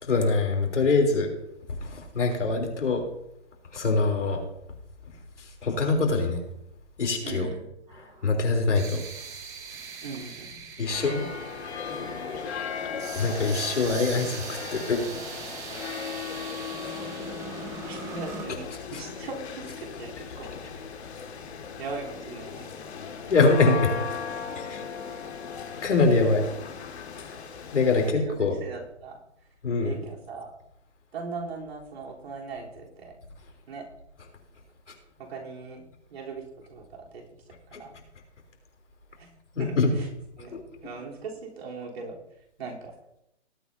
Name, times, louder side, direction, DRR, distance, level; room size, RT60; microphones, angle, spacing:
voice 1, 0.0-1.3 1.8-3.0 3.7-4.4 5.6-6.4 7.0-7.5 8.2-9.0 10.8-11.3 13.2-15.0 23.3-23.9 24.7-24.8 25.8-26.5 27.2-27.4 27.7-28.6 29.6-30.0 37.7-37.8 39.5-39.9 40.5-40.6, left 3 dB, 85° left, 2 dB, 3.6 m, -24 dB
voice 2, 7.2-7.7 10.0-10.5 17.8-20.5 21.8-22.7 28.3-29.1 29.8-30.5 31.1-33.1 33.7-33.9 35.2-35.8 36.1-36.4 36.7-36.9 37.1-37.2 37.7-38.0 39.2-39.3 39.6-40.1 40.4-42.2 42.6-42.9, right 4 dB, 60° right, -2 dB, 3.6 m, -39 dB
sound 1, 7.9-18.5, right 5 dB, 10° right, 0.8 m, -41 dB
sound 2, 10.9-28.1, left 7 dB, 65° left, 2.2 m, -37 dB
19.0 x 9.2 x 2.8 m, 0.83 s
hypercardioid pair, 155°, 35 cm